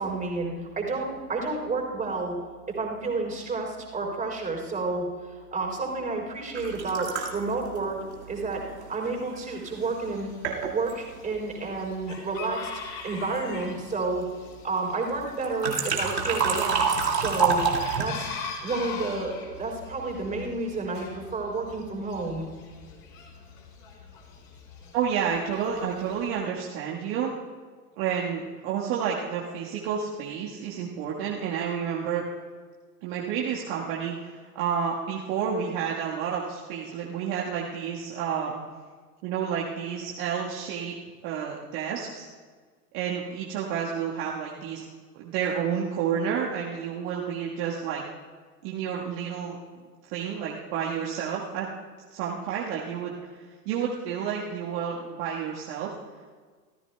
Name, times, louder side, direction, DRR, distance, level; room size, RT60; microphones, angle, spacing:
voice 1, 0.0-2.3 2.7-5.1 5.5-8.0 8.3-8.6 8.9-10.3 10.7-12.7 13.0-14.2 14.6-17.6 18.0-18.3 18.6-22.5, right 3 dB, 15° right, 0 dB, 3.6 m, -30 dB
sound 1, 6.6-9.4 10.0-10.1 10.4-11.0 15.4-18.1, right 5 dB, 80° right, 2.1 m, -28 dB
Chicken rooster, 9.8-26.4, left 5 dB, 50° left, 4.0 m, -43 dB
voice 2, 24.9-27.3 28.0-32.3 33.0-38.6 39.2-40.9 41.2-42.3 42.9-44.8 45.1-48.0 48.6-49.6 50.1-51.7 52.1-53.3 53.7-55.9, right 7 dB, 45° right, -4 dB, 1.6 m, -30 dB
27.5 x 14.0 x 2.3 m, 1.5 s
figure-of-eight pair, 90°, 49 cm